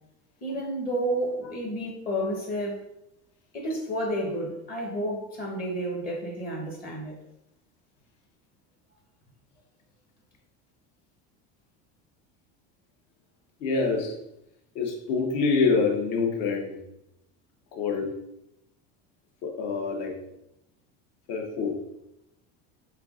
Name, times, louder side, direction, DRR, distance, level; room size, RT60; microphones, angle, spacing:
voice 1, 0.4-2.8 3.5-7.2, right 1 dB, 30° left, -2 dB, 0.9 m, -31 dB
voice 2, 13.6-14.2 14.7-16.8 17.7-18.1 19.4-20.1 21.3-21.8, left 4 dB, 65° left, 1 dB, 1.1 m, -26 dB
5.6 x 3.5 x 2.4 m, 0.84 s
cardioid pair, 165°, 32 cm